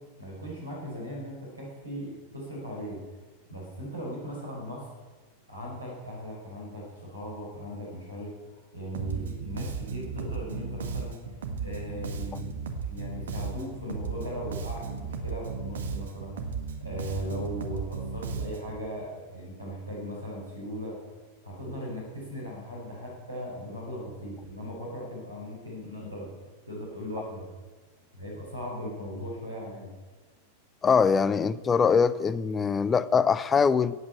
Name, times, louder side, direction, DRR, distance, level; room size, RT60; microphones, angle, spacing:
voice 1, 0.2-3.0 3.5-4.9 5.5-11.1 11.6-12.6 12.9-16.4 16.8-21.0 21.4-26.3 26.7-27.4 28.1-29.9, equal, 85° right, 5.6 m, -38 dB
Bass guitar, 8.9-18.8, right 5 dB, 65° right, 1.7 m, -35 dB
voice 2, 30.8-33.9, left 6 dB, 20° left, 0.6 m, -23 dB
16.5 x 8.9 x 8.5 m
figure-of-eight pair, 90°, 0 cm